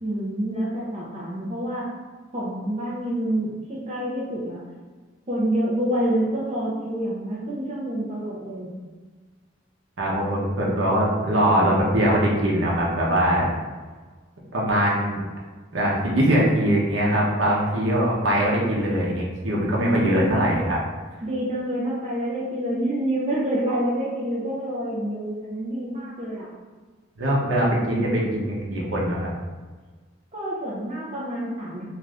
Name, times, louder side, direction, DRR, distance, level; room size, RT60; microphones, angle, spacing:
voice 1, 0.0-1.8 2.3-3.5 3.9-4.6 5.3-8.7 19.8-20.4 21.2-26.5 30.3-31.9, right 1 dB, 35° right, -6 dB, 0.6 m, -27 dB
voice 2, 10.0-13.4 14.5-15.2 15.7-20.8 27.2-29.3, equal, 85° right, -4 dB, 0.8 m, -22 dB
2.5 x 2.5 x 3.3 m, 1.4 s
head